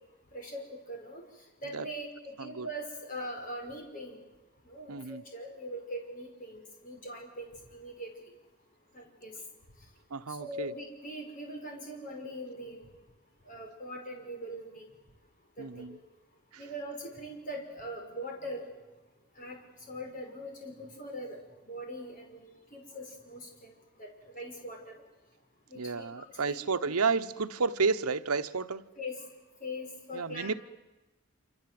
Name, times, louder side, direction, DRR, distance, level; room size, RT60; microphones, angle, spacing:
voice 1, 0.3-1.2 1.6-4.2 4.6-8.3 8.9-9.4 10.3-12.8 13.4-14.9 15.6-16.0 16.6-18.7 19.4-19.6 19.9-21.4 21.6-23.7 24.0-25.0 25.7-26.6 29.0-29.3 29.6-30.6, equal, 35° left, 2 dB, 5.6 m, -42 dB
voice 2, 4.9-5.2 10.1-10.7 15.6-16.0 16.5-16.6 25.8-28.8 30.1-30.5, right 4 dB, 85° right, 10 dB, 1.0 m, -31 dB
27.0 x 26.5 x 7.8 m, 1.1 s
head